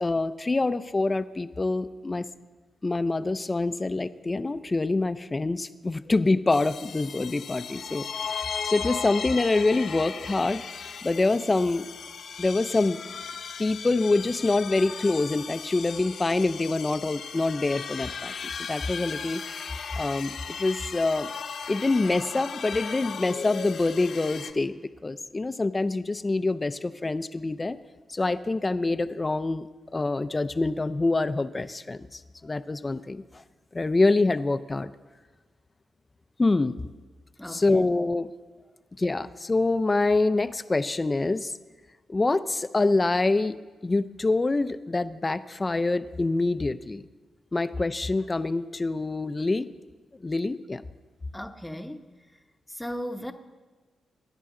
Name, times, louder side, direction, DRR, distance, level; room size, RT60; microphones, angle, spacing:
voice 1, 0.0-2.3 2.8-8.1 8.6-10.6 11.0-11.9 12.4-13.0 13.6-19.4 20.0-20.3 20.6-21.3 21.7-24.7 25.0-27.8 28.1-33.2 33.7-34.9 36.4-36.8 37.5-38.3 39.0-41.5 42.1-43.6 43.8-47.0 47.5-49.7 50.2-50.8, left 3 dB, 20° left, 13 dB, 0.5 m, -25 dB
sound 1, 6.5-24.5, left 6 dB, 65° left, 1.0 m, -37 dB
voice 2, 37.4-37.9 51.3-52.1 52.7-53.3, equal, 5° left, 6 dB, 0.9 m, -37 dB
24.5 x 10.5 x 3.8 m, 1.4 s
cardioid pair, 120°, 0 cm